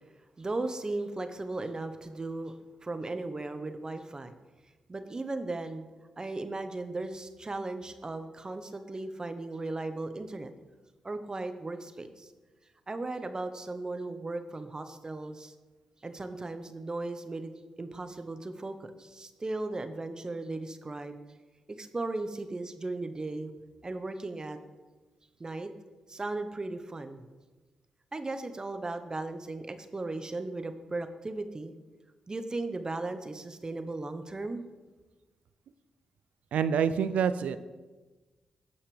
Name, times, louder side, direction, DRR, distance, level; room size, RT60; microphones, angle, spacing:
voice 1, 0.4-2.5 2.8-4.3 4.9-5.9 6.2-10.5 11.0-12.3 12.9-15.5 16.0-17.5 17.8-21.2 21.8-23.5 23.8-24.6 25.4-25.7 26.1-27.2 28.1-31.7 32.3-34.6, right 2 dB, 35° right, 9 dB, 1.0 m, -36 dB
voice 2, 36.5-37.6, right 7 dB, 75° right, 14 dB, 0.4 m, -26 dB
16.5 x 5.7 x 3.4 m, 1.2 s
supercardioid pair, 45°, 2 cm